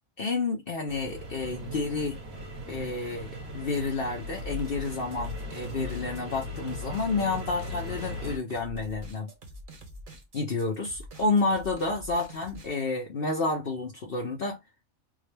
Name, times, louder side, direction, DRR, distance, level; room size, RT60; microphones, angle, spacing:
voice 1, 0.2-2.2 2.7-9.3 10.3-14.6, left 3 dB, 50° left, 0.9 m, -30 dB
sound 1, 0.9-8.4, left 1 dB, 85° right, 1.7 m, -38 dB
sound 2, 4.3-12.7, equal, 45° right, 1.0 m, -45 dB
3.7 x 2.0 x 3.2 m
omnidirectional pair, 1.4 m